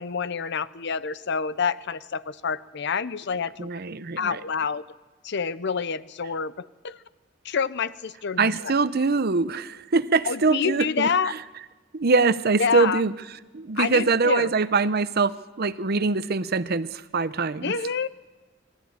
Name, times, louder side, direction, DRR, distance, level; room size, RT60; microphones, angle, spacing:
voice 1, 0.0-3.7 4.2-4.8 5.2-7.0 7.4-8.7 10.2-11.3 12.6-13.0 13.8-14.5 17.6-18.1, left 5 dB, 60° left, 16 dB, 0.7 m, -27 dB
voice 2, 3.6-4.4 8.4-11.4 11.9-13.1 13.5-17.8, right 4 dB, 55° right, 14 dB, 0.8 m, -23 dB
23.5 x 14.5 x 9.5 m, 1.2 s
head